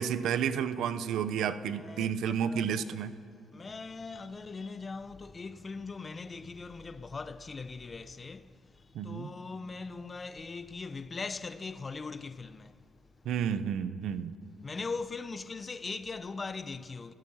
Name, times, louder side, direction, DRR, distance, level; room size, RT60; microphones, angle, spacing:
voice 1, 0.0-3.1 8.9-9.3 13.2-14.3, right 8 dB, 80° right, 1.0 m, -31 dB
voice 2, 1.7-3.0 3.5-12.9 14.6-17.1, left 4 dB, 30° left, 0.9 m, -40 dB
28.5 x 17.0 x 5.8 m
cardioid pair, 90°, 0 cm